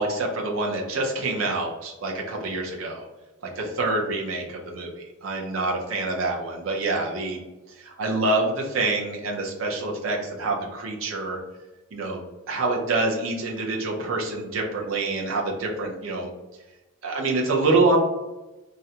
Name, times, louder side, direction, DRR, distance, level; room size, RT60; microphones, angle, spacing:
voice 1, 0.0-3.0 3.6-7.4 7.8-11.4 11.9-16.3 17.0-18.0, right 2 dB, 70° right, 0 dB, 0.6 m, -26 dB
2.4 x 2.1 x 2.7 m, 1.1 s
head